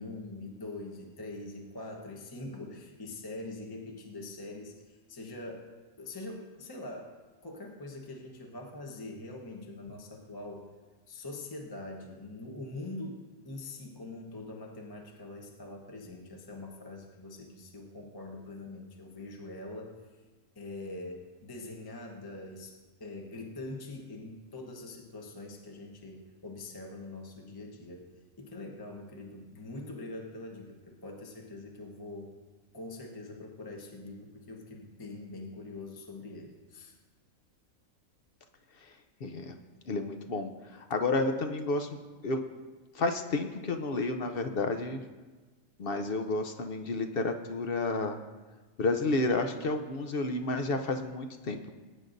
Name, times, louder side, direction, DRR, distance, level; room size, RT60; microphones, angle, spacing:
voice 1, 0.0-5.7 6.0-7.1 7.4-10.7 11.1-13.2 13.4-20.2 20.5-28.0 28.4-32.3 32.7-37.0, left 2 dB, 20° left, 1 dB, 1.0 m, -43 dB
voice 2, 39.2-39.6 39.9-41.9 42.2-42.4 42.9-45.0 45.8-48.2 48.8-51.7, left 2 dB, 55° left, 6 dB, 0.7 m, -31 dB
19.5 x 9.4 x 2.6 m, 1.3 s
omnidirectional pair, 1.4 m